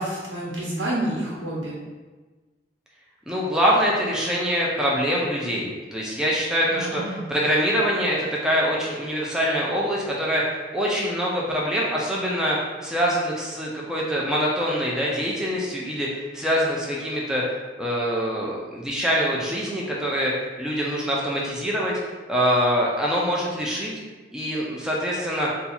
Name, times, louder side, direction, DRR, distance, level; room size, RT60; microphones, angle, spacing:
voice 1, 0.0-1.8 6.7-7.3, right 1 dB, 80° right, -6 dB, 1.1 m, -29 dB
voice 2, 3.3-17.4 17.8-22.0 22.3-23.9 24.3-25.5, equal, 5° right, -5 dB, 0.4 m, -24 dB
2.7 x 2.3 x 4.1 m, 1.3 s
head